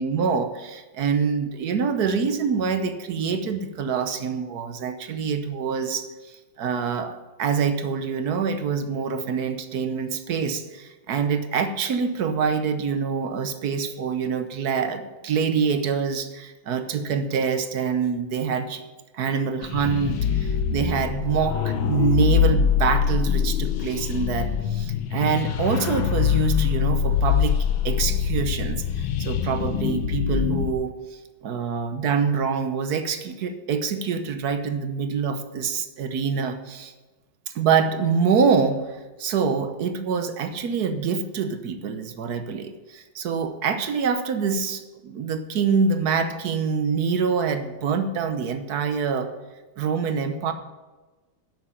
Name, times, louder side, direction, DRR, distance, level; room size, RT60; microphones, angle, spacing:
voice 1, 0.0-18.8 19.1-27.6 27.8-36.9 37.5-49.3 49.8-50.5, right 6 dB, 60° right, 9 dB, 1.3 m, -25 dB
sound 1, 19.6-30.7, left 7 dB, 90° left, 1.6 m, -24 dB
10.5 x 8.5 x 5.8 m, 1.2 s
omnidirectional pair, 2.1 m